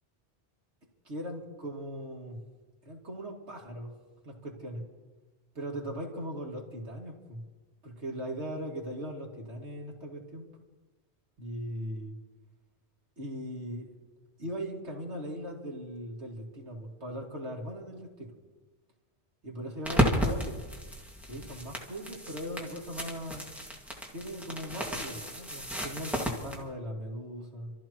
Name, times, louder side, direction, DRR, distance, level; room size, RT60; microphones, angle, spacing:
voice 1, 1.0-2.4 2.9-3.9 4.2-4.8 5.5-7.4 7.8-10.5 11.4-12.1 13.2-13.9 14.4-18.3 19.4-20.6 21.3-23.5 24.1-27.7, equal, 80° right, -1 dB, 2.7 m, -39 dB
sound 1, 19.8-26.6, equal, ahead, 2.0 m, -33 dB
28.0 x 14.0 x 3.1 m, 1.2 s
omnidirectional pair, 1.1 m